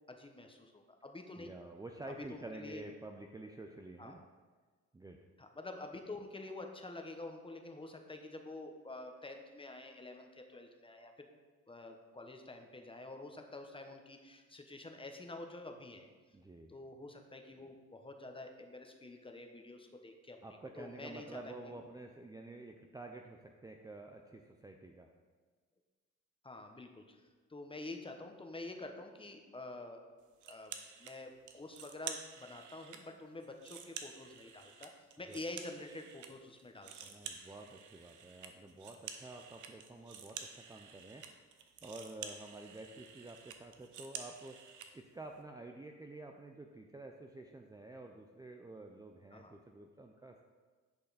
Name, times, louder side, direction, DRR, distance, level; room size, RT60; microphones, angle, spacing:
voice 1, 0.1-1.5 2.3-2.9 4.0-4.2 5.4-11.3 11.7-16.1 16.7-20.4 20.8-21.7 26.4-27.2 27.5-30.0 30.4-34.9 35.2-37.5 49.3-49.6, left 2 dB, 15° left, 4 dB, 1.1 m, -48 dB
voice 2, 1.4-4.2 4.9-5.2 16.3-16.7 20.4-25.1 35.3-35.4 37.0-41.5 41.8-44.6 44.9-50.4, right 2 dB, 10° right, 3 dB, 0.5 m, -50 dB
sound 1, 30.4-31.1 31.5-33.0 33.4-36.3 36.6-44.9, right 7 dB, 75° right, 0.9 m, -49 dB
10.5 x 5.5 x 4.1 m, 1.4 s
cardioid pair, 90°, 30 cm